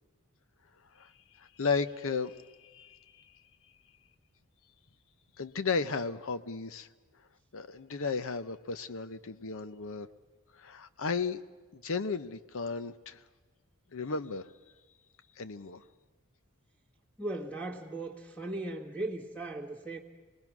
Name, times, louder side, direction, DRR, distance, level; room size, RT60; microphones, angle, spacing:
voice 1, 0.9-3.3 5.4-6.9 7.5-10.1 10.5-11.4 11.7-13.2 13.9-14.5 15.4-15.8, left 4 dB, 65° left, 12 dB, 0.7 m, -34 dB
voice 2, 17.2-20.0, right 2 dB, 5° left, -1 dB, 1.6 m, -37 dB
26.0 x 20.0 x 6.0 m, 1.3 s
head